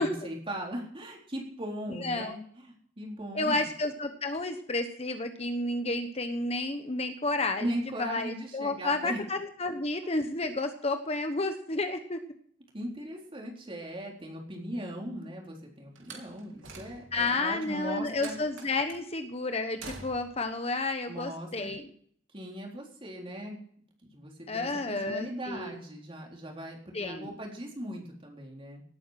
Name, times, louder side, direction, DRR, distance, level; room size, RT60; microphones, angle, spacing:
voice 1, 0.0-3.6 7.6-9.2 12.7-18.3 21.1-21.7 22.3-23.6 24.0-28.8, equal, 30° right, 0 dB, 4.0 m, -39 dB
voice 2, 1.9-2.4 3.3-7.7 8.0-12.2 17.1-21.9 24.5-25.7 26.9-27.3, left 2 dB, 30° left, 7 dB, 1.1 m, -31 dB
Slam, 16.0-17.3 18.2-19.1 19.8-20.4, right 4 dB, 85° right, 3.5 m, -46 dB
18.0 x 9.3 x 5.9 m, 0.62 s
head